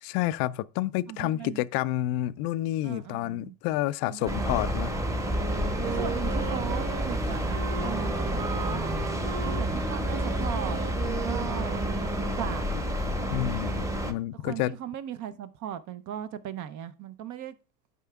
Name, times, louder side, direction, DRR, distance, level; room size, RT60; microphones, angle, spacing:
voice 1, 0.0-4.9 13.3-14.7, left 15 dB, 50° left, 0.5 m, -29 dB
voice 2, 1.1-1.7 2.8-3.5 4.0-4.5 5.8-8.9 9.4-11.9 12.2-12.8 14.3-17.5, right 10 dB, 40° right, 0.7 m, -38 dB
sound 1, 4.3-14.1, equal, 5° right, 1.0 m, -29 dB
Wind instrument woodwind instrument, 5.3-13.1, right 6 dB, 25° right, 1.4 m, -37 dB
12.0 x 4.9 x 2.3 m
hypercardioid pair, 95°, 44 cm